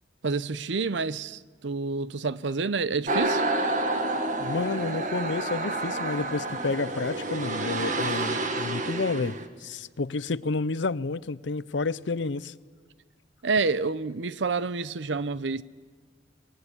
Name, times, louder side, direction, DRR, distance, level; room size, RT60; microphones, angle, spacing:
voice 1, 0.2-3.5 13.4-15.6, right 4 dB, 85° right, 0.7 m, -28 dB
sound 1, 3.1-9.5, right 2 dB, 45° right, 1.7 m, -29 dB
voice 2, 4.4-9.3 9.6-12.5, left 3 dB, 85° left, 0.7 m, -30 dB
23.0 x 20.0 x 9.9 m
head